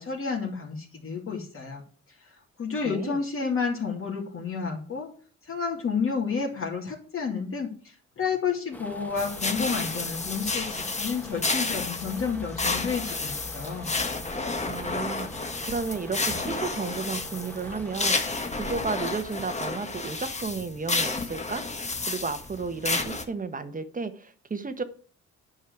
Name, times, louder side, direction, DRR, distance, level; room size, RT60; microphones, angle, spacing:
voice 1, 0.0-1.8 2.6-5.1 5.5-13.9, left 5 dB, 45° left, -2 dB, 2.6 m, -30 dB
voice 2, 2.8-3.2 14.6-21.6 22.1-24.8, right 4 dB, 25° right, 10 dB, 1.4 m, -33 dB
sound 1, 8.7-18.6, equal, 5° left, 1.7 m, -44 dB
sound 2, 9.2-23.2, left 3 dB, 20° left, 1.6 m, -31 dB
9.5 x 5.5 x 7.8 m, 0.42 s
cardioid pair, 90°, 30 cm